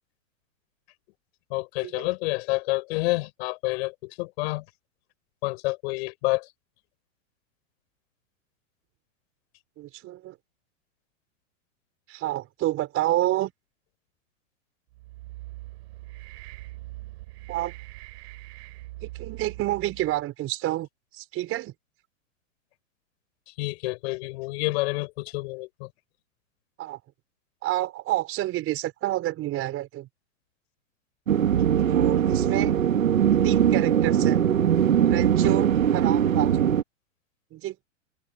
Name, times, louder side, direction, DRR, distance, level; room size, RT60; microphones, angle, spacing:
voice 1, 1.5-4.6 5.4-6.5 23.6-25.9, left 23 dB, 55° left, 6.1 m, -28 dB
voice 2, 9.8-10.4 12.1-13.5 17.5-17.7 19.0-20.9 21.1-21.7 26.8-27.0 27.6-30.1 31.9-32.7 33.4-34.4 35.1-36.7 37.5-37.8, right 15 dB, 35° right, 5.6 m, -29 dB
sound 1, 14.9-20.2, right 19 dB, 55° right, 6.2 m, -42 dB
sound 2, 31.3-36.8, right 9 dB, 85° right, 2.1 m, -21 dB
hypercardioid pair, 120°, 39 cm